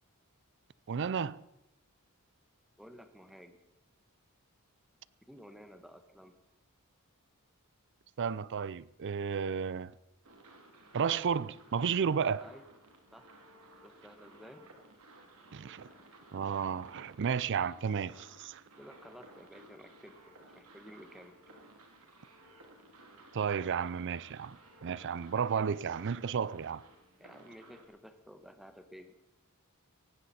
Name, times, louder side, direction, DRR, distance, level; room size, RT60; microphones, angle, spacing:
voice 1, 0.9-1.4 8.2-9.9 10.9-12.4 15.5-15.9 16.3-18.6 23.3-26.8, right 6 dB, 55° right, 0.4 m, -33 dB
voice 2, 2.8-3.6 5.3-6.4 12.4-12.6 13.1-13.3 13.8-14.8 18.8-21.4 27.2-29.1, equal, ahead, 1.3 m, -53 dB
sound 1, 10.2-27.9, right 2 dB, 75° right, 2.9 m, -57 dB
18.0 x 15.5 x 4.3 m
head